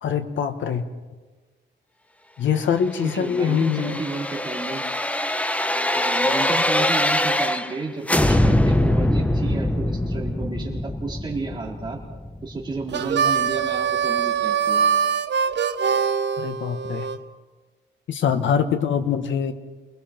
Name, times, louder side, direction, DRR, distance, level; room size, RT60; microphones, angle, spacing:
voice 1, 0.0-0.8 2.4-4.0 16.4-17.1 18.1-19.5, left 7 dB, 80° left, 8 dB, 1.6 m, -23 dB
voice 2, 3.0-4.8 5.9-12.0 12.4-15.0, right 3 dB, 25° right, -2 dB, 4.3 m, -32 dB
sound 1, 3.1-7.8 8.1-12.9 13.3-13.4, left 1 dB, 5° left, 0.8 m, -23 dB
Harmonica, 12.9-17.2, right 7 dB, 65° right, 1.0 m, -23 dB
29.0 x 21.0 x 4.5 m, 1.3 s
wide cardioid pair, 135°, 19 cm